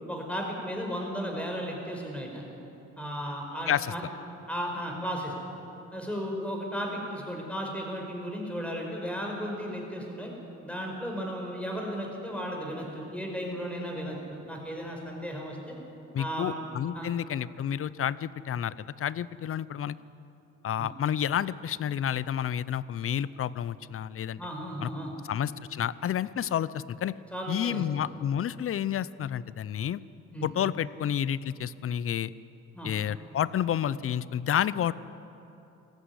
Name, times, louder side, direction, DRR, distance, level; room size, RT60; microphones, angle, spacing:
voice 1, 0.1-2.4 3.0-4.1 4.5-5.3 5.9-10.3 10.6-15.7 16.2-16.6 16.9-17.1 20.8-20.9 24.4-25.1 27.3-28.0 30.3-30.5 32.7-32.9, equal, 5° left, 0 dB, 5.4 m, -35 dB
voice 2, 16.1-20.0 20.6-24.4 24.8-24.9 25.3-27.2 27.5-30.0 30.4-32.3 32.8-34.9, left 9 dB, 45° left, 18 dB, 0.6 m, -30 dB
19.5 x 15.0 x 9.7 m, 3.0 s
cardioid pair, 90°, 30 cm